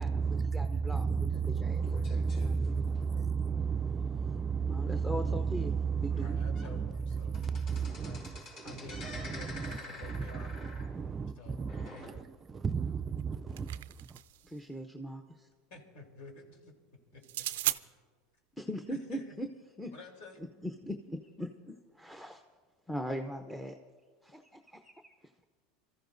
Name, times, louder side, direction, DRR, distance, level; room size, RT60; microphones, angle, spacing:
voice 1, 0.0-14.2, right 5 dB, 25° right, 0.4 m, -33 dB
voice 2, 0.5-1.1 1.6-1.8 4.6-6.4 14.4-15.5 18.6-19.5 19.8-19.9 20.6-22.4 22.9-23.7 24.2-25.1, equal, 5° left, 0.8 m, -40 dB
sound 1, 1.4-3.6 4.1-4.3 4.6-4.7 5.2-5.3 6.0-6.1 6.4-6.8 7.0-12.6 12.9-13.0 13.8-13.9, left 2 dB, 50° left, 4.7 m, -48 dB
voice 3, 6.1-7.4 7.8-8.3 8.6-10.6 11.4-12.2 15.7-16.7 17.1-17.4 18.9-19.4 19.9-20.4, left 3 dB, 75° left, 3.6 m, -51 dB
sound 2, 13.2-14.5 17.2-17.8, right 15 dB, 80° right, 0.4 m, -35 dB
27.0 x 14.0 x 2.7 m
supercardioid pair, 110°, 0 cm